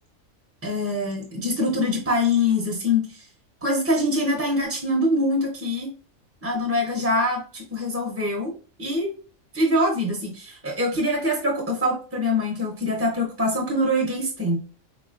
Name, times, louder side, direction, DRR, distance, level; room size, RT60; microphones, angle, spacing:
voice 1, 0.6-3.3 3.6-5.9 6.4-8.5 8.8-9.1 9.5-14.6, left 1 dB, 15° right, -1 dB, 0.5 m, -24 dB
3.9 x 3.0 x 2.4 m, 0.38 s
omnidirectional pair, 1.4 m